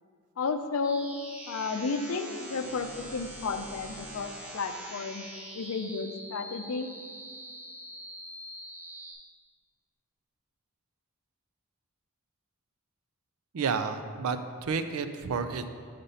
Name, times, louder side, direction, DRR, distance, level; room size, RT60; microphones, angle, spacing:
voice 1, 0.4-1.1 1.5-5.2 5.5-6.9, left 4 dB, 70° left, 8 dB, 0.5 m, -32 dB
sound 1, 0.8-9.1, right 1 dB, 5° right, 0.8 m, -44 dB
voice 2, 13.5-15.7, right 5 dB, 75° right, 10 dB, 0.4 m, -31 dB
5.4 x 5.1 x 5.6 m, 2.1 s
head